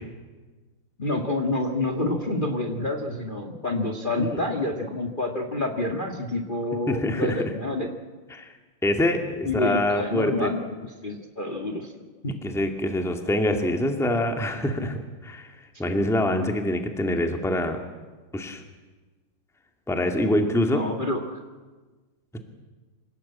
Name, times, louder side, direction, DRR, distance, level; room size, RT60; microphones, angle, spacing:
voice 1, 1.0-7.9 9.5-11.9 12.2-12.3 20.7-21.4, left 2 dB, 25° left, 3 dB, 1.9 m, -28 dB
voice 2, 6.9-7.4 8.3-8.5 8.8-10.5 12.4-15.5 15.8-17.8 18.3-18.6 19.9-20.8, left 1 dB, ahead, 4 dB, 1.9 m, -25 dB
26.5 x 18.0 x 8.7 m, 1.3 s
omnidirectional pair, 2.3 m